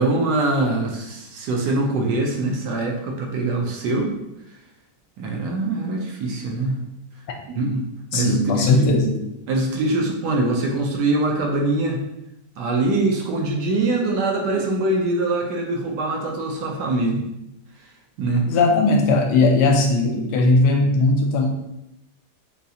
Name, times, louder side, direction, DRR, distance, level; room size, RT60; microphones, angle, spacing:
voice 1, 0.0-4.1 5.2-6.8 7.5-7.8 8.1-8.9 9.5-12.0 12.6-17.3 18.2-18.4, right 2 dB, 75° right, 1 dB, 1.1 m, -23 dB
voice 2, 8.1-9.1 18.4-21.5, left 3 dB, 80° left, 2 dB, 1.2 m, -18 dB
3.9 x 2.4 x 2.7 m, 0.86 s
omnidirectional pair, 1.9 m